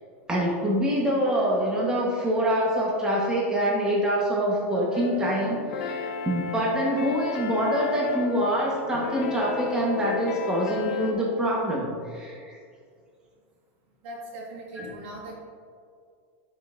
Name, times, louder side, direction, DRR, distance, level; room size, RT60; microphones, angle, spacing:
voice 1, 0.3-12.6, equal, 10° right, -5 dB, 1.2 m, -25 dB
sound 1, 4.9-11.1, left 5 dB, 70° left, 0.8 m, -33 dB
voice 2, 14.0-15.4, right 1 dB, 55° right, -2 dB, 1.8 m, -39 dB
11.5 x 5.4 x 2.6 m, 2.2 s
supercardioid pair, 155°, 7 cm